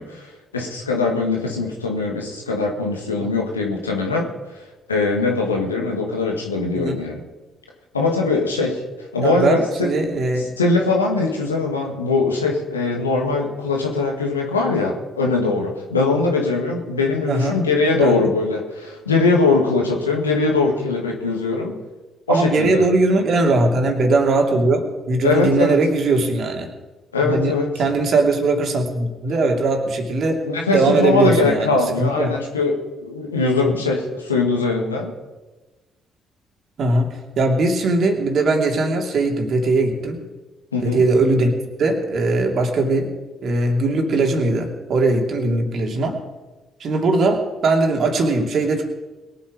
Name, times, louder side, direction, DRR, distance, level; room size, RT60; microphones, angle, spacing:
voice 1, 0.0-4.3 4.9-7.2 7.9-8.8 9.1-9.9 10.6-21.8 22.3-22.8 25.2-25.8 27.1-27.7 30.5-35.1 40.7-41.0, left 3 dB, 90° left, 0 dB, 1.9 m, -21 dB
voice 2, 9.2-10.5 17.3-17.6 18.0-18.2 22.3-26.7 27.2-30.4 30.7-32.3 33.6-33.8 36.8-40.2 40.8-41.5 41.8-43.1 43.4-46.2 46.8-48.8, right 2 dB, 55° right, 2 dB, 2.8 m, -20 dB
21.5 x 8.5 x 5.1 m, 1.2 s
figure-of-eight pair, 45°, 0 cm